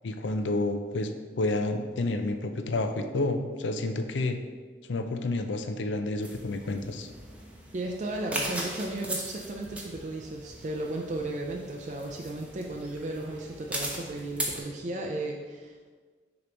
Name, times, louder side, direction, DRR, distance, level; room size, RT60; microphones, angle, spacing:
voice 1, 0.0-1.1 1.4-4.4 4.9-7.1, left 2 dB, 85° left, 7 dB, 0.5 m, -29 dB
sound 1, 6.2-14.6, right 1 dB, 5° right, 0.7 m, -39 dB
voice 2, 7.7-15.9, right 2 dB, 40° right, 0 dB, 0.4 m, -35 dB
6.6 x 3.0 x 5.1 m, 1.5 s
head